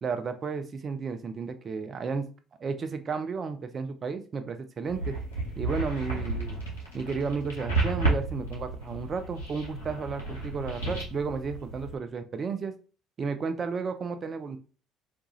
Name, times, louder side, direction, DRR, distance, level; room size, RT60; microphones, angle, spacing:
voice 1, 0.0-2.3 2.6-5.2 5.6-6.6 6.9-12.7 13.2-14.6, right 5 dB, 35° right, 8 dB, 0.4 m, -33 dB
sound 1, 4.8-12.0, right 2 dB, 75° left, 0.8 m, -32 dB
2.4 x 2.3 x 2.9 m, 0.36 s
figure-of-eight pair, 55°, 0 cm